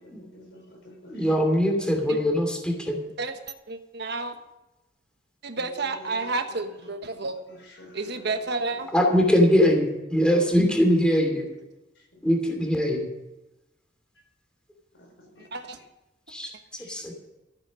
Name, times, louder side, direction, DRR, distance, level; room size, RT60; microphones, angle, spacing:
voice 1, 0.0-1.2 1.8-2.0 5.6-5.7 6.0-6.3 7.8-8.3 15.3-15.5 16.8-17.1, equal, 70° left, 2 dB, 4.7 m, -48 dB
voice 2, 1.1-3.0 8.9-11.5 12.2-13.1 16.3-16.5 16.9-17.1, equal, 5° left, 2 dB, 2.7 m, -22 dB
voice 3, 3.7-4.3 5.4-7.4 7.9-8.9 15.5-15.8, right 3 dB, 60° right, 7 dB, 1.3 m, -30 dB
13.5 x 9.7 x 6.4 m, 0.99 s
head